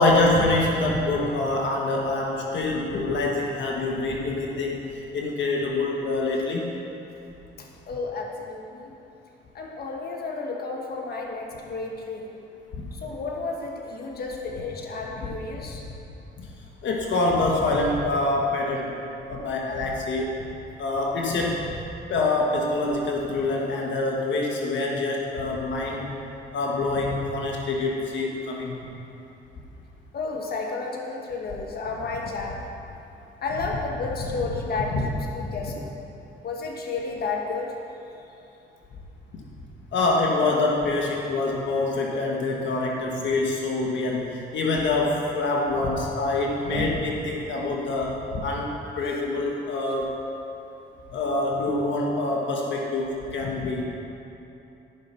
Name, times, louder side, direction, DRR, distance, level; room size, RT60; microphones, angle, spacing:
voice 1, 0.0-6.7 12.7-12.9 16.4-16.5 16.8-18.9 19.3-20.3 20.8-21.7 22.1-26.1 26.5-28.9 34.9-35.0 39.3-39.4 39.9-50.2 51.1-53.8, left 2 dB, 70° left, -1 dB, 1.3 m, -25 dB
voice 2, 7.6-8.9 9.5-12.3 12.9-15.8 30.1-32.6 33.4-36.0 36.4-37.7, left 3 dB, 50° left, 0 dB, 1.4 m, -32 dB
13.0 x 5.9 x 5.6 m, 2.9 s
cardioid pair, 90°, 20 cm